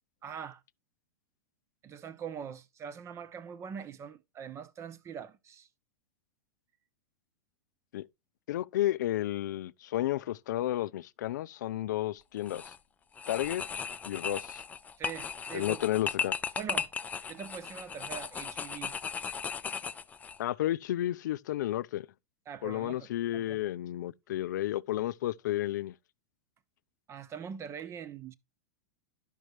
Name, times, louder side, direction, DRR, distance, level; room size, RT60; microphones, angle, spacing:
voice 1, 0.2-0.6 1.8-5.7 15.0-15.8 16.6-16.9 17.3-18.9 22.5-23.1 23.3-23.7 27.1-28.3, right 7 dB, 30° right, 0.8 m, -42 dB
voice 2, 8.5-12.7 13.3-13.6 14.0-14.6 15.5-16.3 20.4-22.1 22.6-25.9, left 14 dB, 70° left, 0.5 m, -32 dB
sound 1, 12.4-12.8 13.2-20.4, left 6 dB, 15° left, 0.5 m, -37 dB
12.0 x 5.5 x 3.1 m
hypercardioid pair, 110°, 10 cm